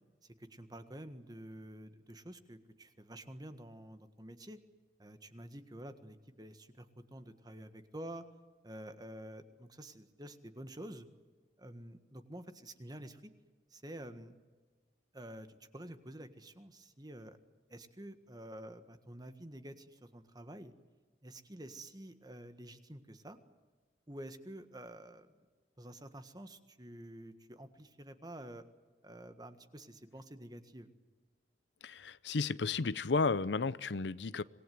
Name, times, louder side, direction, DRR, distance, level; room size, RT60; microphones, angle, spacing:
voice 1, 0.2-4.6 5.0-8.2 8.6-11.1 11.6-13.3 13.7-14.4 15.1-15.5 15.7-17.4 17.7-20.7 21.2-23.4 24.1-25.3 25.8-28.6 29.0-30.9, right 1 dB, 20° right, 1.6 m, -49 dB
voice 2, 31.8-34.4, left 4 dB, 75° left, 0.7 m, -33 dB
26.5 x 19.5 x 9.5 m
head